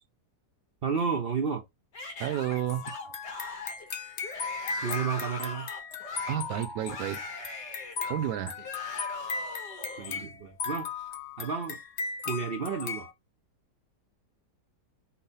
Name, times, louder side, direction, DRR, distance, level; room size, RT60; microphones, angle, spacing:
voice 1, 0.8-1.6 4.8-5.7 8.6-8.7 10.0-11.1 11.4-11.8 12.2-13.1, right 6 dB, 55° right, 0.6 m, -31 dB
Yell / Screaming, 1.9-10.2, left 3 dB, 75° left, 2.2 m, -41 dB
voice 2, 2.2-2.8 6.3-7.2 8.0-8.6, right 12 dB, 75° right, 1.1 m, -31 dB
sound 1, 2.6-13.1, left 5 dB, 60° left, 0.8 m, -37 dB
5.6 x 2.1 x 4.0 m
omnidirectional pair, 1.9 m